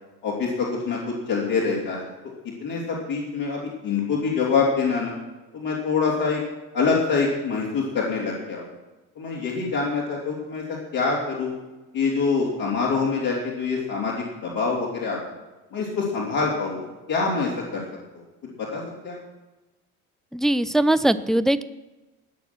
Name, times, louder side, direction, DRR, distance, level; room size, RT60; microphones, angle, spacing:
voice 1, 0.2-2.1 2.6-5.1 5.5-6.4 6.7-8.6 9.2-11.5 11.9-15.2 15.7-17.8 18.4-19.2, left 4 dB, 55° left, -7 dB, 3.5 m, -25 dB
voice 2, 20.3-21.6, right 1 dB, ahead, 13 dB, 0.4 m, -20 dB
19.5 x 6.6 x 6.2 m, 1.1 s
hypercardioid pair, 65°, 44 cm